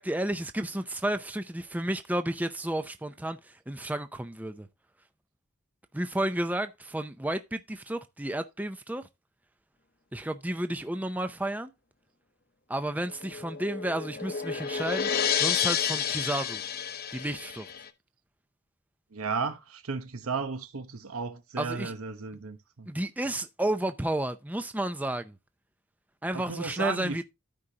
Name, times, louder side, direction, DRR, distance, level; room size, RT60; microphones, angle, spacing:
voice 1, 0.0-4.7 5.9-9.1 10.1-11.7 12.7-16.6 17.1-17.7 21.6-21.9 22.9-25.3 26.2-27.2, right 1 dB, 5° right, 0.5 m, -32 dB
sound 1, 13.1-17.9, left 8 dB, 45° left, 0.8 m, -30 dB
voice 2, 19.1-22.9 26.3-27.2, right 4 dB, 75° right, 0.9 m, -34 dB
13.5 x 5.0 x 2.8 m
head